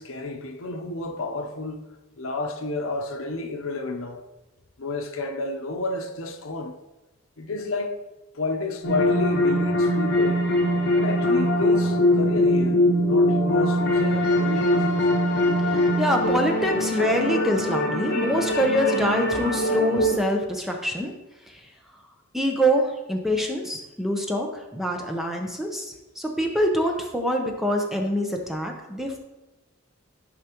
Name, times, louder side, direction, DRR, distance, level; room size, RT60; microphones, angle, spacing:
voice 1, 0.0-1.9 2.2-4.2 4.8-6.8 7.4-8.0 8.3-10.4 10.9-15.1, left 3 dB, 80° left, 0.8 m, -30 dB
sound 1, 8.8-20.2, left 1 dB, 55° left, 1.4 m, -22 dB
voice 2, 16.0-21.1 21.5-21.6 22.3-29.2, equal, ahead, 0.7 m, -25 dB
11.5 x 5.0 x 3.0 m
head